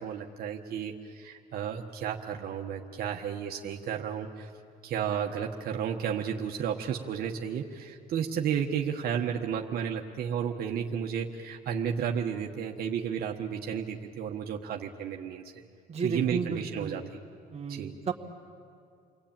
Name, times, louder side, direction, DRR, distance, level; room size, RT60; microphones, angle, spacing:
voice 1, 0.0-4.5 4.8-15.6 16.0-17.2 17.7-17.9, right 8 dB, 65° right, 2 dB, 1.4 m, -32 dB
voice 2, 15.9-16.9 17.5-18.1, right 5 dB, 40° right, 2 dB, 1.9 m, -33 dB
29.5 x 21.5 x 8.9 m, 2.4 s
cardioid pair, 110°, 17 cm